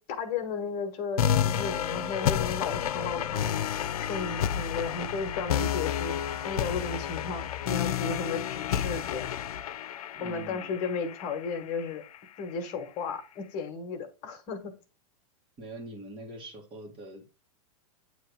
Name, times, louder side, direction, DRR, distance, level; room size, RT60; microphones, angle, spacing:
voice 1, 0.0-9.3 10.2-12.0 12.4-14.7, left 4 dB, 40° left, 1.3 m, -34 dB
sound 1, 1.2-12.2, left 9 dB, 85° left, 0.5 m, -30 dB
voice 2, 10.1-10.8 15.6-17.3, right 1 dB, 30° right, 1.8 m, -43 dB
8.9 x 3.1 x 4.7 m
hypercardioid pair, 140°, 19 cm